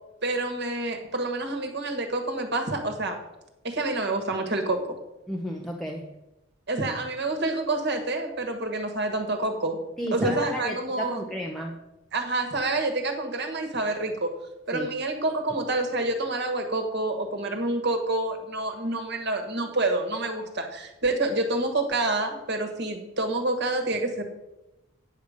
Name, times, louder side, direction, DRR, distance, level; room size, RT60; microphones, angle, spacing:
voice 1, 0.2-3.2 3.6-4.9 6.7-9.8 10.1-11.2 12.1-14.3 14.7-24.2, right 2 dB, 50° right, 4 dB, 1.5 m, -28 dB
voice 2, 5.3-6.1 10.0-11.8 14.7-14.9, equal, ahead, -1 dB, 0.6 m, -33 dB
9.4 x 6.7 x 5.0 m, 0.95 s
head